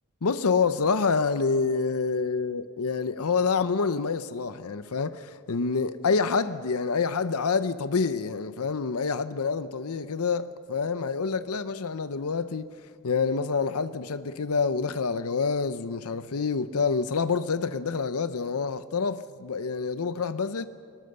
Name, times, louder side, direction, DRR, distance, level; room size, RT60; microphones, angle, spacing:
voice 1, 0.2-12.7 13.0-20.6, left 5 dB, 75° left, 0.7 m, -27 dB
23.0 x 20.5 x 6.7 m
head